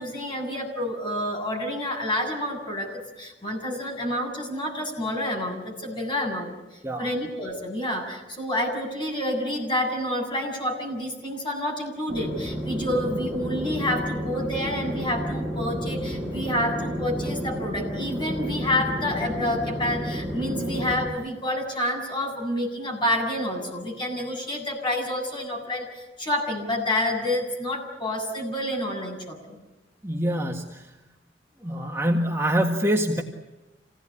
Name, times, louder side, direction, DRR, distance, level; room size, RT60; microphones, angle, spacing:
voice 1, 0.0-29.6, left 1 dB, 30° left, 1 dB, 7.3 m, -28 dB
voice 2, 6.8-7.1 30.0-30.9 31.6-33.2, equal, 15° right, 1 dB, 1.7 m, -25 dB
sound 1, 12.1-21.1, equal, 5° left, 7.9 m, -31 dB
27.5 x 17.5 x 9.9 m, 1.1 s
head